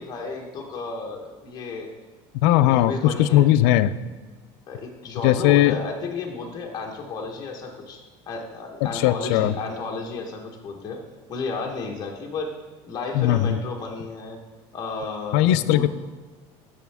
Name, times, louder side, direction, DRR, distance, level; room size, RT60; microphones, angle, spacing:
voice 1, 0.0-1.9 2.6-3.6 4.7-8.0 8.3-11.0 11.3-12.5 12.8-14.4 14.7-15.9, left 4 dB, 30° left, 0 dB, 1.1 m, -33 dB
voice 2, 2.4-3.9 5.2-5.8 8.8-9.5 13.1-13.6 15.3-15.9, left 13 dB, 90° left, 14 dB, 0.4 m, -19 dB
8.3 x 7.1 x 3.5 m, 1.3 s
cardioid pair, 145°, 13 cm